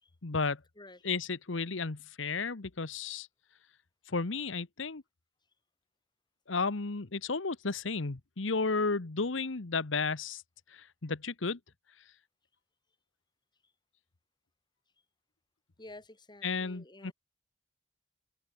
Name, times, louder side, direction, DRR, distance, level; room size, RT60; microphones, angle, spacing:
voice 1, 0.2-0.6 1.0-3.3 4.1-5.0 6.5-10.4 10.7-11.6 16.4-17.1, left 4 dB, 90° left, 1.2 m, -33 dB
voice 2, 15.8-17.1, left 2 dB, 25° left, 5.2 m, -51 dB
head